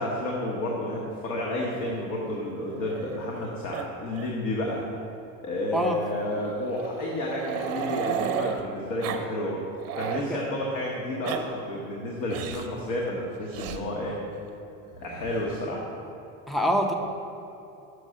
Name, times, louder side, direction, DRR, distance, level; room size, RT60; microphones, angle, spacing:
voice 1, 0.0-4.8 5.4-9.6 9.9-14.2 15.0-15.8, left 1 dB, 65° left, -2 dB, 1.2 m, -31 dB
Growling, 1.5-3.4 3.7-4.3 4.6-4.7 5.7-8.6 9.0-9.3 9.6-10.3 11.0-11.4 12.3-12.7 13.5-13.8 14.9-15.6, right 8 dB, 45° right, 0.6 m, -34 dB
voice 2, 16.5-16.9, equal, ahead, 3 dB, 0.3 m, -25 dB
6.5 x 5.4 x 6.3 m, 2.8 s
cardioid pair, 155°, 34 cm